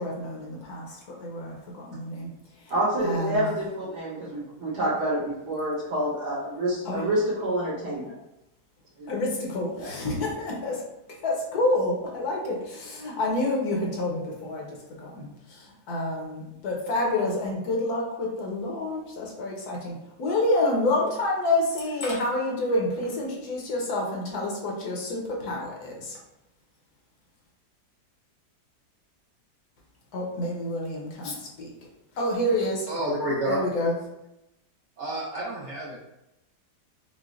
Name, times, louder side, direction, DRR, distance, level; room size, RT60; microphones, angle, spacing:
voice 1, 0.0-2.3 2.6-2.7 3.0-3.5 6.8-7.1 9.1-10.8 11.2-26.2 30.1-31.7 32.2-32.9 33.5-33.9, left 2 dB, 70° left, -1 dB, 1.4 m, -28 dB
voice 2, 2.7-8.1 9.0-9.1 9.8-9.9, right 1 dB, 75° right, -9 dB, 2.3 m, -28 dB
voice 3, 32.9-33.6 35.0-36.0, right 1 dB, 55° right, -5 dB, 0.9 m, -29 dB
5.9 x 2.1 x 2.4 m, 0.90 s
omnidirectional pair, 1.8 m